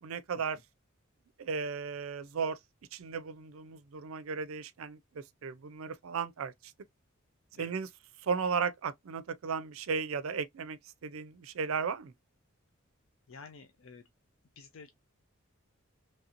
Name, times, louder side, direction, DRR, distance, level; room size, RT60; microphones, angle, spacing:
voice 1, 0.0-0.6 1.4-2.6 2.9-6.5 7.6-7.9 8.2-12.1, right 5 dB, 80° right, 0.4 m, -35 dB
voice 2, 13.3-14.1 14.6-14.9, left 5 dB, 70° left, 0.5 m, -51 dB
3.2 x 2.8 x 2.4 m
head